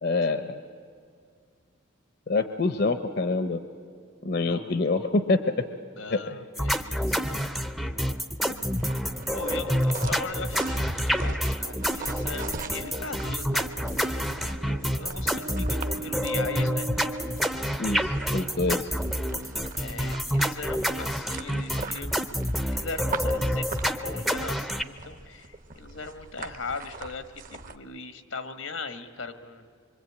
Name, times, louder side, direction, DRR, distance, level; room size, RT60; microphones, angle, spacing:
voice 1, 0.0-0.6 2.3-3.6 4.2-5.6 6.1-6.4 8.5-8.6 17.8-18.9, left 3 dB, 50° left, 9 dB, 0.8 m, -26 dB
voice 2, 4.4-4.9 6.0-8.2 8.8-8.9 9.3-13.7 14.0-16.9 19.8-22.2 22.6-29.6, left 4 dB, 85° left, 9 dB, 1.5 m, -39 dB
sound 1, 6.6-24.8, equal, ahead, 0.6 m, -28 dB
sound 2, 8.5-27.8, right 4 dB, 40° right, 0.9 m, -42 dB
sound 3, 11.5-18.4, right 2 dB, 60° right, 0.6 m, -41 dB
25.0 x 24.0 x 8.7 m, 2.2 s
head